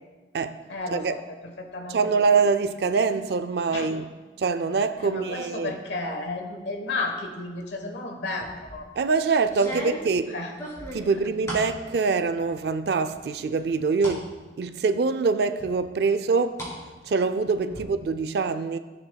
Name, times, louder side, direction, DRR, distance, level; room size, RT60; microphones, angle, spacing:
voice 1, 0.7-2.0 3.7-3.9 5.0-8.9 9.7-9.9 10.3-10.5 17.7-17.9, left 2 dB, 80° left, 1.1 m, -33 dB
voice 2, 1.9-4.1 4.4-5.7 9.0-10.3 10.9-16.7 17.0-18.8, right 4 dB, 65° right, 0.4 m, -24 dB
sound 1, 8.4-8.8 9.5-11.7 12.2-12.7 13.1-14.2 14.6-14.7 15.6-16.7 17.1-17.8, equal, 15° left, 2.6 m, -38 dB
15.0 x 7.0 x 2.3 m
head